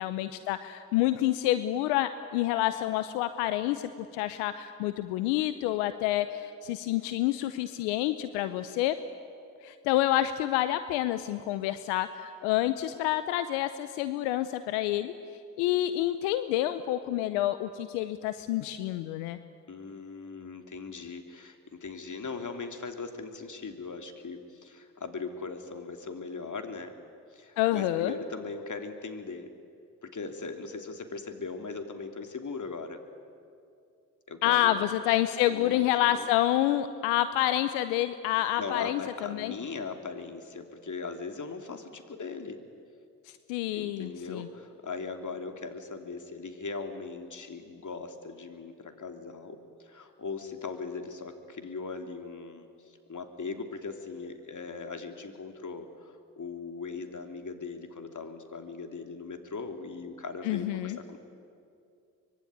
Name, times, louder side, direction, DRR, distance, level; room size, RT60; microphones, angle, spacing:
voice 1, 0.0-8.9 9.6-15.1 15.6-19.4 27.6-28.1 34.4-39.5 43.3-44.5 60.4-61.0, left 14 dB, 85° left, 12 dB, 0.8 m, -28 dB
voice 2, 19.7-26.9 27.3-29.5 30.0-33.0 34.3-34.8 35.5-36.3 38.6-42.6 43.7-61.2, left 4 dB, 45° left, 6 dB, 3.3 m, -39 dB
25.0 x 22.5 x 9.6 m, 2.5 s
hypercardioid pair, 40°, 41 cm